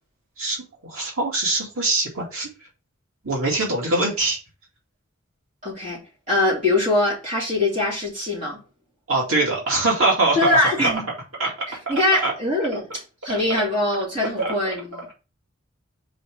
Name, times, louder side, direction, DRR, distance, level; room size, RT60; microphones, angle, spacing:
voice 1, 0.8-2.5 3.2-4.4 9.1-10.5 10.8-10.9 11.4-11.5 12.2-12.3 14.4-14.5, right 2 dB, 85° right, 2.5 m, -22 dB
voice 2, 5.6-8.6 10.3-11.0 11.7-15.1, left 2 dB, 35° right, 3.3 m, -23 dB
4.8 x 4.2 x 4.7 m
head